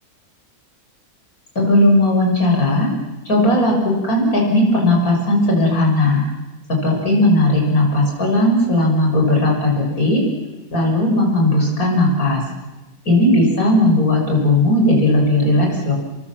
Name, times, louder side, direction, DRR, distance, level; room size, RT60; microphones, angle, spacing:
voice 1, 1.6-2.9 3.3-6.2 6.7-10.2 10.7-12.4 13.1-15.9, left 1 dB, 70° left, 0 dB, 6.9 m, -16 dB
28.5 x 22.5 x 7.4 m, 1.1 s
omnidirectional pair, 1.6 m